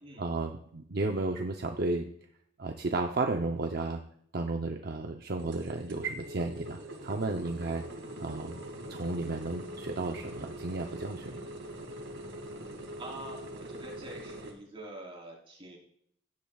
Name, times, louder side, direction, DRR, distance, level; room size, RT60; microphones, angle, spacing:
voice 1, 0.2-2.1 2.6-4.0 4.3-7.8 8.2-8.6 8.9-11.4, right 2 dB, 55° right, 4 dB, 0.7 m, -33 dB
sound 1, 5.4-14.5, right 1 dB, 70° right, 2.2 m, -43 dB
voice 2, 13.0-15.8, right 1 dB, 30° right, -2 dB, 3.6 m, -45 dB
16.5 x 10.5 x 2.4 m, 0.66 s
head